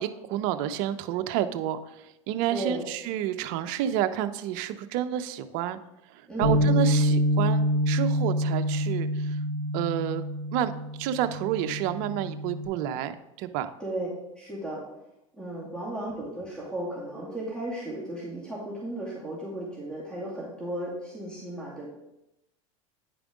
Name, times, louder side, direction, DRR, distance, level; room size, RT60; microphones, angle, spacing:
voice 1, 0.0-5.8 6.1-9.4 9.7-10.2 10.5-10.7 11.0-13.7 15.7-15.8, right 11 dB, 55° right, 10 dB, 0.6 m, -30 dB
voice 2, 2.5-2.8 6.3-6.8 13.8-14.1 14.4-14.8 15.4-21.9, right 1 dB, 5° left, -6 dB, 2.2 m, -35 dB
Bass guitar, 6.4-12.7, equal, 80° left, 1.9 m, -26 dB
9.3 x 5.1 x 3.6 m, 0.87 s
hypercardioid pair, 95°, 17 cm